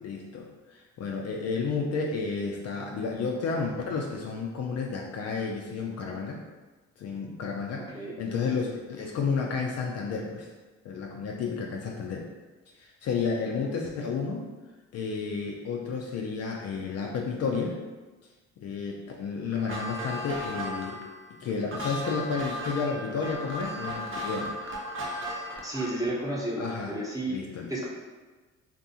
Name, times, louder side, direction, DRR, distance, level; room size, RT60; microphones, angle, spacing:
voice 1, 0.0-6.4 7.0-10.5 10.8-12.3 12.7-14.4 14.9-17.8 18.6-21.0 21.4-24.5 26.6-26.9 27.3-27.7, left 5 dB, 50° left, 0 dB, 0.4 m, -31 dB
sound 1, 19.5-26.1, equal, 40° right, 0.7 m, -36 dB
voice 2, 25.6-27.4 27.7-27.9, right 1 dB, 10° right, -6 dB, 0.9 m, -32 dB
2.6 x 2.4 x 2.7 m, 1.2 s
supercardioid pair, 65°, 32 cm